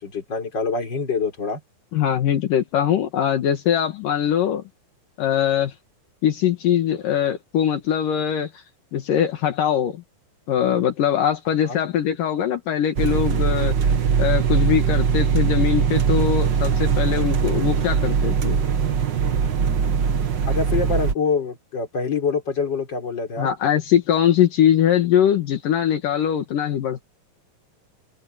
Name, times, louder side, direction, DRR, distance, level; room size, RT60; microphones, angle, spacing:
voice 1, 0.0-1.6 11.6-11.8 20.5-23.5, left 5 dB, 30° left, 4.6 m, -25 dB
voice 2, 1.9-4.6 5.2-5.7 6.2-8.5 8.9-10.0 10.5-13.7 14.2-18.6 23.4-27.0, left 9 dB, 70° left, 3.2 m, -21 dB
sound 1, 13.0-21.1, right 6 dB, 50° right, 1.4 m, -21 dB
open air
omnidirectional pair, 4.0 m